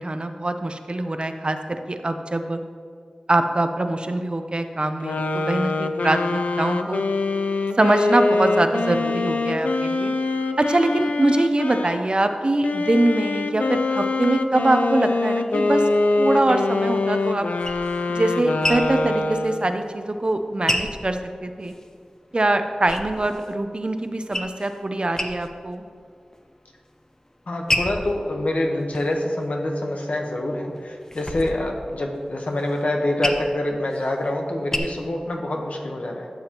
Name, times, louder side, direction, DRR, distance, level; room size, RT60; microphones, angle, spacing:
voice 1, 0.0-2.6 3.3-7.0 7.8-10.1 10.6-15.8 16.2-17.5 18.1-21.7 22.3-25.8, right 2 dB, 45° right, 7 dB, 0.6 m, -23 dB
sound 1, 5.0-12.0 12.6-19.8, left 2 dB, 90° left, 0.4 m, -24 dB
sound 2, 17.2-21.9 22.3-23.6 23.9-24.8 25.1-25.8 26.2-26.8 27.3-30.0 30.4-34.8, left 1 dB, 25° left, 0.7 m, -31 dB
voice 2, 27.5-36.3, left 1 dB, 70° left, 2 dB, 1.1 m, -26 dB
12.5 x 7.2 x 3.0 m, 2.1 s
wide cardioid pair, 65°, 2 cm